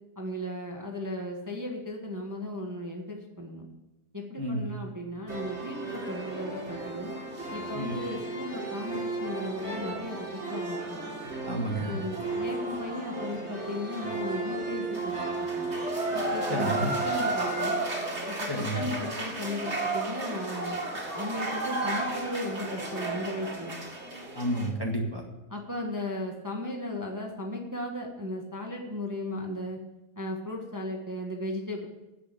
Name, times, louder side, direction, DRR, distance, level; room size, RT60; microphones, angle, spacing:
voice 1, 0.2-3.7 4.1-7.1 7.5-11.1 11.8-15.7 16.1-17.8 18.3-23.8 25.5-29.8 30.2-31.9, left 1 dB, 10° right, 0 dB, 1.5 m, -36 dB
sound 1, 5.3-24.7, right 2 dB, 40° right, 2.6 m, -33 dB
voice 2, 11.4-11.9 16.5-17.0 18.5-18.9 24.3-25.2, right 1 dB, 15° left, 0 dB, 1.6 m, -30 dB
10.0 x 8.6 x 8.5 m, 0.98 s
omnidirectional pair, 1.7 m